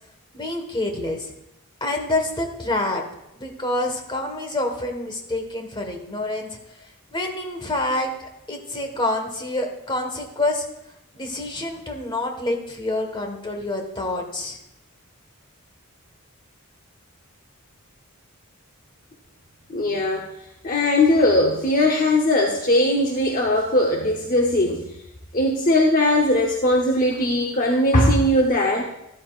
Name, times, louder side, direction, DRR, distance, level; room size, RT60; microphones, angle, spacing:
voice 1, 0.3-1.3 1.8-3.0 3.3-8.1 8.5-10.6 11.1-14.6, left 2 dB, 20° left, 3 dB, 1.5 m, -27 dB
voice 2, 19.7-20.3 20.6-24.8 25.3-28.9, left 1 dB, 40° left, 0 dB, 0.9 m, -19 dB
13.0 x 12.5 x 2.5 m, 0.85 s
head